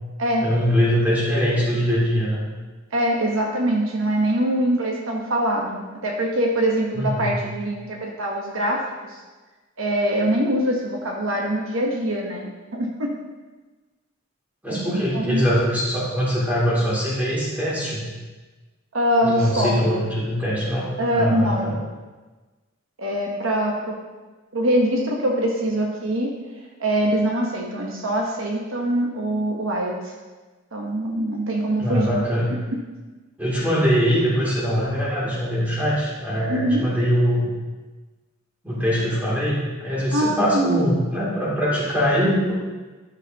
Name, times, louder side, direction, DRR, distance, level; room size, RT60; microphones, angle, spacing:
voice 1, 0.4-2.4 6.9-7.3 14.6-18.0 19.2-21.8 31.8-32.5 33.4-37.5 38.6-42.5, equal, 10° right, -7 dB, 2.6 m, -22 dB
voice 2, 2.9-9.2 9.8-13.1 14.7-15.4 18.9-19.8 21.0-21.7 23.0-24.0 24.5-26.3 26.8-30.1 30.7-32.2 32.5-32.8 36.5-36.8 40.1-40.8, right 1 dB, 65° right, -1 dB, 1.1 m, -23 dB
11.5 x 6.4 x 2.9 m, 1.3 s
head